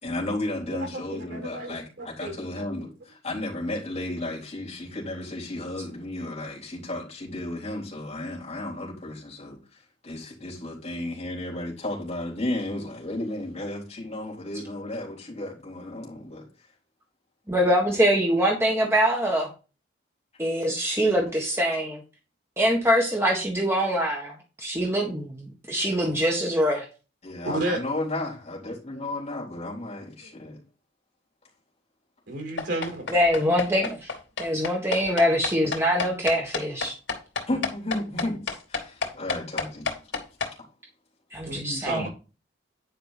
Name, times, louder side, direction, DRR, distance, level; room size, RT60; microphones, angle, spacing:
voice 1, 0.0-9.6 10.0-16.5 27.2-30.6 37.5-39.8, left 1 dB, 35° left, 3.9 m, -33 dB
voice 2, 0.7-2.4 27.4-27.8 30.2-30.3 32.3-33.1 41.5-42.1, right 2 dB, 70° right, 5.4 m, -32 dB
voice 3, 17.5-19.5 20.4-22.0 22.6-26.8 33.1-34.1 34.4-36.9 41.3-42.1, equal, 15° right, 1.6 m, -24 dB
sound 1, 32.6-40.5, left 4 dB, 75° left, 2.6 m, -30 dB
10.0 x 5.2 x 4.1 m
head